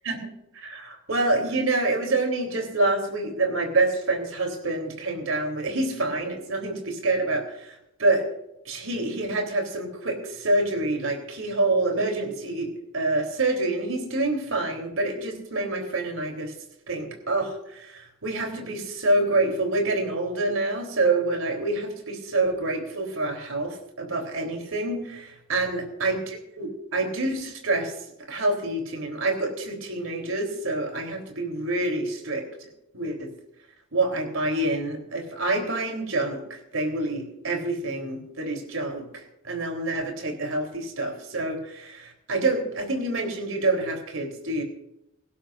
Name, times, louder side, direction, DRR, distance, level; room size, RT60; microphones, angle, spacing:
voice 1, 0.0-8.3 8.7-16.5 16.9-27.9 28.3-33.3 33.9-44.6, right 2 dB, 85° right, 4 dB, 3.7 m, -27 dB
19.0 x 16.0 x 2.6 m, 0.81 s
head